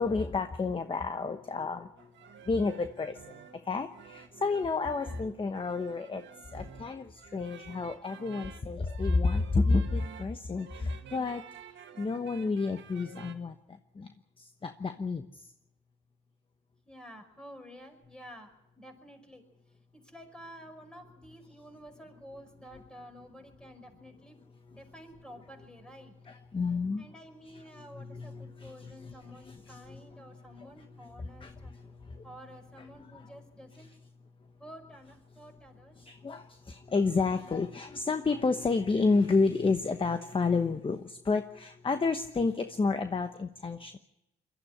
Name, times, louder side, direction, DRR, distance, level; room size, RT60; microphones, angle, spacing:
voice 1, 0.0-2.1 2.4-6.2 6.5-11.4 12.0-13.6 13.9-15.5 26.3-27.0 27.8-29.1 29.5-29.8 31.2-31.5 32.0-32.2 36.0-44.0, left 4 dB, 25° left, 8 dB, 1.0 m, -30 dB
sound 1, 2.0-13.3, right 8 dB, 70° right, 1.9 m, -51 dB
voice 2, 16.9-24.4 24.7-26.1 27.0-31.7 32.2-33.9 34.6-36.0, equal, 5° left, 4 dB, 5.2 m, -51 dB
22.0 x 13.5 x 9.9 m, 0.85 s
cardioid pair, 90°, 20 cm